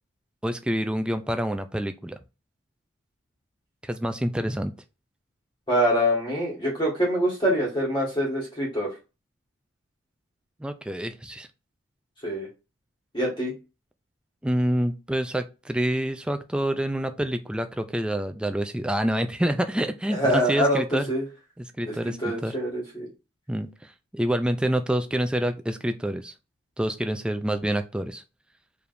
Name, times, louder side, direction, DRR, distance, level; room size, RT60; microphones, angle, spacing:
voice 1, 0.4-2.2 3.8-4.7 10.6-11.5 14.4-21.1 21.6-22.6 23.5-26.3 26.8-28.2, right 1 dB, 5° right, 0.3 m, -27 dB
voice 2, 5.7-8.9 12.2-12.5 13.1-13.5 20.1-20.8 21.1-21.2 22.2-23.1, equal, 25° left, 1.6 m, -24 dB
4.7 x 3.4 x 2.6 m
head